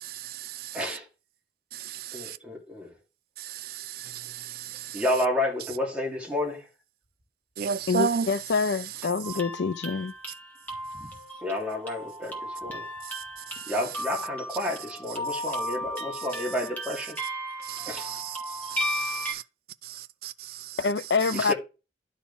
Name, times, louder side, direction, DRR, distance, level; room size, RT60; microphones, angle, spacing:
voice 1, 0.0-1.0 1.7-2.4 3.4-5.0 7.6-9.4 13.0-14.0 14.5-14.6 15.5-15.6 16.1-16.4 17.6-19.4 19.8-20.8 21.2-21.5, right 7 dB, 55° right, 0.4 m, -35 dB
voice 2, 0.7-1.1 2.1-2.9 4.9-6.7 10.9-11.1 11.4-12.9 13.7-17.2 17.9-18.1 21.3-21.5, left 1 dB, 5° right, 2.5 m, -30 dB
voice 3, 7.9-10.1 20.8-21.5, left 4 dB, 75° left, 0.5 m, -26 dB
sound 1, 9.2-19.3, equal, 10° left, 1.9 m, -35 dB
11.0 x 4.1 x 3.5 m
head